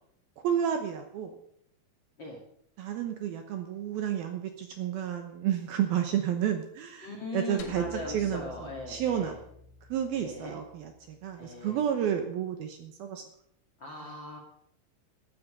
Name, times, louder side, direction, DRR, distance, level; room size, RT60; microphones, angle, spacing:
voice 1, 0.4-1.3 2.8-9.4 9.9-13.2, right 9 dB, 70° right, 6 dB, 2.5 m, -31 dB
voice 2, 7.0-9.4 10.2-10.6 11.4-11.8 13.8-14.4, left 2 dB, 35° left, 0 dB, 2.2 m, -40 dB
sound 1, 7.6-12.0, left 3 dB, 80° left, 4.0 m, -50 dB
13.5 x 10.5 x 6.7 m, 0.71 s
omnidirectional pair, 5.2 m